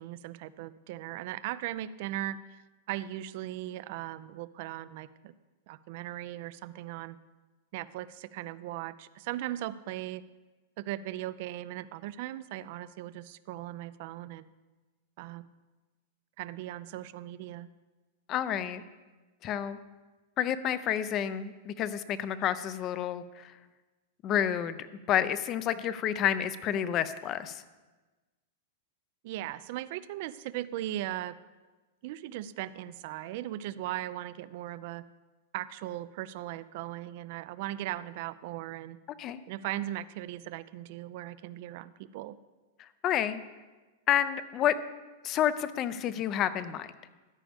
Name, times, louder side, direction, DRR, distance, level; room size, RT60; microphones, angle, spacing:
voice 1, 0.0-2.6 2.9-5.3 5.7-7.2 7.7-10.2 10.9-14.5 15.2-15.4 16.4-17.7 29.2-31.4 32.0-35.0 35.5-39.0 39.5-42.4, right 14 dB, 55° right, 16 dB, 0.4 m, -38 dB
voice 2, 18.3-18.8 19.4-19.8 20.4-23.5 24.2-24.8 25.1-27.6 39.2-39.4 43.0-43.4 44.1-44.7 45.2-46.9, left 10 dB, 30° left, 14 dB, 0.5 m, -29 dB
13.5 x 9.9 x 3.5 m, 1.2 s
supercardioid pair, 145°, 0 cm